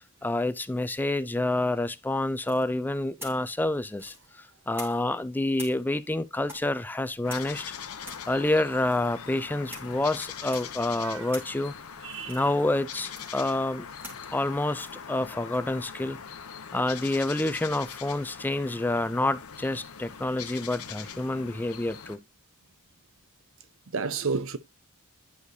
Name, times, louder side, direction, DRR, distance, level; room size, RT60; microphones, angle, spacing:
voice 1, 0.2-7.7 8.3-11.7 12.3-13.9 14.3-16.2 16.7-22.2, left 2 dB, 10° left, 0.4 m, -28 dB
sound 1, 2.4-5.2 5.5-16.5, equal, 10° right, 2.5 m, -48 dB
sound 2, 7.2-22.2, left 7 dB, 80° left, 0.8 m, -42 dB
voice 2, 11.0-11.4 12.0-12.4 23.9-24.6, right 4 dB, 65° right, 0.7 m, -31 dB
10.5 x 4.8 x 2.6 m
head